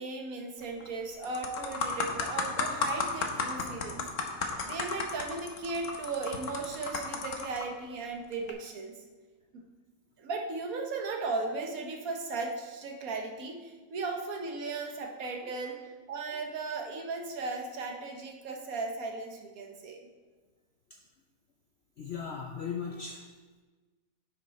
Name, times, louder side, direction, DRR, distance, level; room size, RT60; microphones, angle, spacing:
voice 1, 0.0-4.1 4.6-9.0 9.5-9.6 10.2-20.1, right 3 dB, 55° right, 2 dB, 1.4 m, -36 dB
sound 1, 0.6-0.9 1.2-7.6 8.3-8.5, left 4 dB, 55° left, 1.1 m, -33 dB
voice 2, 22.0-23.2, left 6 dB, 85° left, 1 dB, 0.5 m, -37 dB
9.7 x 6.0 x 4.1 m, 1.3 s
omnidirectional pair, 1.9 m